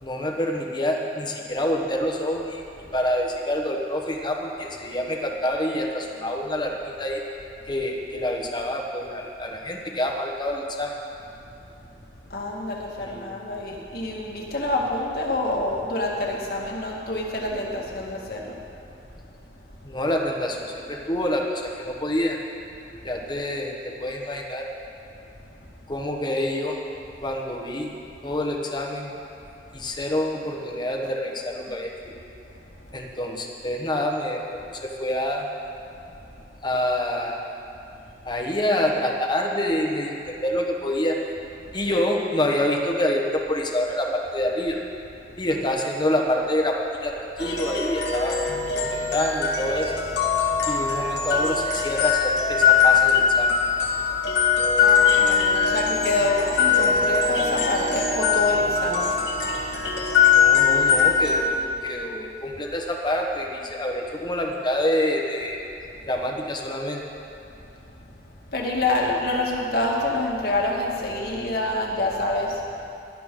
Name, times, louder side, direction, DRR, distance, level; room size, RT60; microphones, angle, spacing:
voice 1, 0.0-2.6 2.9-7.2 7.7-10.9 13.0-13.4 19.8-22.4 23.0-24.7 25.9-26.8 27.2-27.9 28.2-29.2 29.7-32.1 32.9-35.5 36.6-37.5 38.2-41.2 41.7-44.8 45.4-48.4 48.7-49.9 50.7-53.6 60.3-65.6 66.1-67.0, left 1 dB, 25° left, 0 dB, 1.2 m, -27 dB
voice 2, 12.3-18.6 29.6-29.7 31.7-31.8 32.8-32.9 41.7-41.8 54.8-59.2 59.5-59.7 67.6-67.9 68.5-72.6, left 2 dB, 55° left, -2 dB, 2.0 m, -27 dB
sound 1, 47.4-61.4, left 6 dB, 75° left, 1.9 m, -21 dB
18.0 x 11.5 x 3.8 m, 2.7 s
head